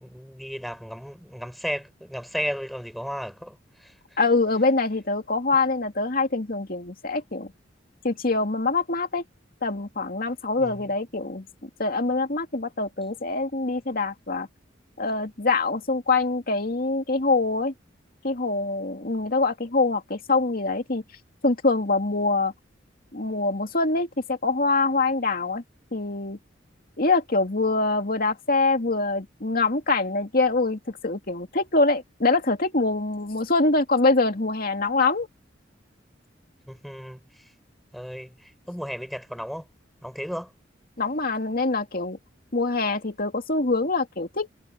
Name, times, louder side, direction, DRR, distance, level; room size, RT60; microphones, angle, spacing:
voice 1, 0.0-4.2 10.6-10.9 36.7-37.5 37.9-39.7 40.0-40.5, equal, ahead, 7.4 m, -34 dB
voice 2, 4.2-7.5 8.0-9.2 9.6-14.5 15.0-17.7 18.2-21.0 21.4-22.5 23.1-25.6 25.9-26.4 27.0-35.3 41.0-42.2 42.5-44.5, left 3 dB, 50° left, 2.4 m, -24 dB
head